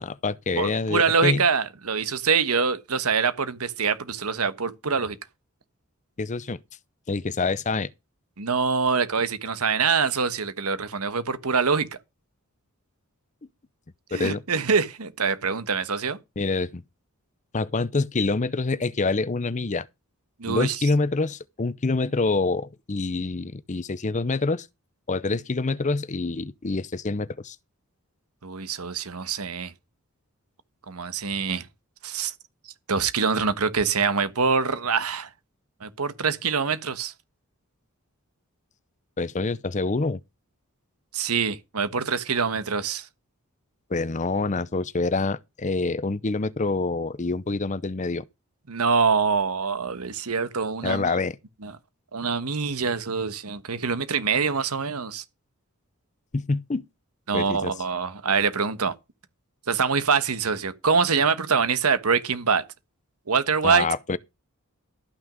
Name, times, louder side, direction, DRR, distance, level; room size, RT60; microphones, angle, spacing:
voice 1, 0.0-1.4 6.2-6.6 7.1-7.9 14.1-14.4 16.4-16.8 17.5-19.9 20.5-24.7 25.1-27.6 39.2-40.2 43.9-48.2 50.8-51.4 56.3-56.8 57.3-57.7 63.6-64.2, left 3 dB, 35° left, 0.6 m, -26 dB
voice 2, 0.6-5.2 8.4-11.9 14.1-16.2 20.4-20.8 28.4-29.7 30.9-31.7 32.0-32.3 32.9-35.3 35.8-37.1 41.1-43.1 48.7-51.1 51.6-51.7 52.1-55.2 57.3-58.9 59.7-62.6 63.3-63.9, right 5 dB, 85° right, 1.3 m, -24 dB
13.0 x 6.2 x 5.1 m
head